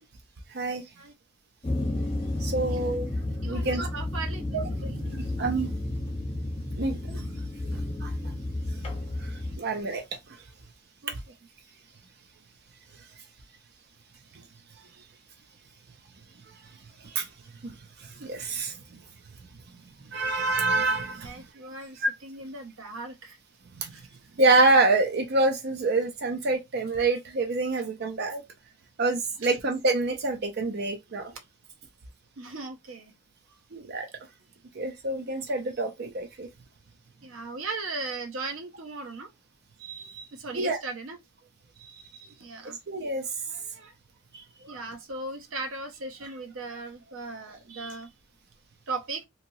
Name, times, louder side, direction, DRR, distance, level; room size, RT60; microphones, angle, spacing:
voice 1, 0.5-0.8 2.4-3.1 3.4-3.9 4.5-5.7 6.8-7.2 7.7-8.3 9.2-10.0 17.0-17.3 17.6-19.0 20.1-21.4 22.0-22.1 23.8-24.0 24.4-28.4 29.0-31.3 33.7-34.1 34.7-36.5 39.8-40.3 40.5-40.8 41.8-41.9 42.9-43.3 44.3-44.4, right 2 dB, 55° right, 0.6 m, -27 dB
sound 1, 1.6-9.6, left 1 dB, 30° left, 1.0 m, -32 dB
voice 2, 3.4-5.0 11.0-11.1 21.2-23.4 23.9-24.0 29.4-29.5 32.4-33.1 37.2-39.3 40.3-41.2 42.4-42.8 43.5-43.9 44.6-48.1 48.9-49.2, right 3 dB, 85° right, 0.7 m, -38 dB
2.9 x 2.8 x 2.6 m
head